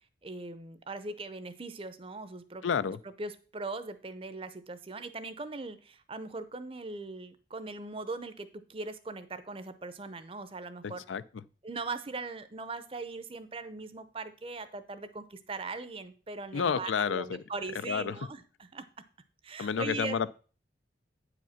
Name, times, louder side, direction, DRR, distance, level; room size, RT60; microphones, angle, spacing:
voice 1, 0.2-2.6 3.2-11.0 11.6-18.4 18.7-18.9 19.4-20.2, right 3 dB, 30° right, 0.6 m, -40 dB
voice 2, 2.6-3.0 10.8-11.2 16.5-17.4 17.7-18.3 19.6-20.3, left 6 dB, 85° left, 0.4 m, -30 dB
9.0 x 5.0 x 5.7 m
head